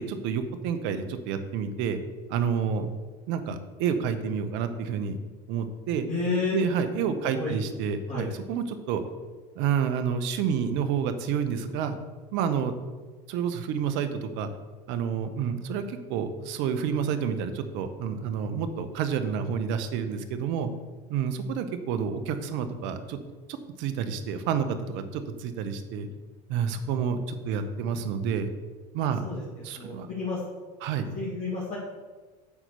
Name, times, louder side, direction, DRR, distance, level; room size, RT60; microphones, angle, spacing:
voice 1, 0.0-2.0 2.3-2.9 3.3-5.2 5.5-6.1 6.5-9.0 9.5-12.0 12.3-12.7 13.3-14.5 14.9-20.7 21.1-23.2 23.8-26.1 26.5-28.5 28.9-29.2 29.6-30.1 30.8-31.1, right 7 dB, 60° right, 9 dB, 1.0 m, -29 dB
voice 2, 6.1-6.6 7.3-7.6 8.1-8.3 29.2-29.4 29.8-30.4 31.1-31.8, left 3 dB, 30° left, -7 dB, 2.5 m, -30 dB
8.5 x 4.5 x 6.7 m, 1.3 s
hypercardioid pair, 80°, 21 cm